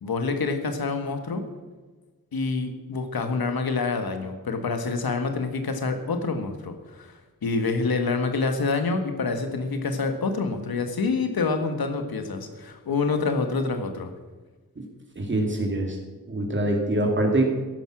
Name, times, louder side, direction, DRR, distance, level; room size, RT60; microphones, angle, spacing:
voice 1, 0.0-1.4 2.3-14.1, left 4 dB, 85° left, 6 dB, 1.8 m, -27 dB
voice 2, 15.2-16.0 16.3-17.4, right 1 dB, 35° right, 2 dB, 2.4 m, -24 dB
14.5 x 11.0 x 6.2 m, 1.3 s
wide cardioid pair, 140°, 35 cm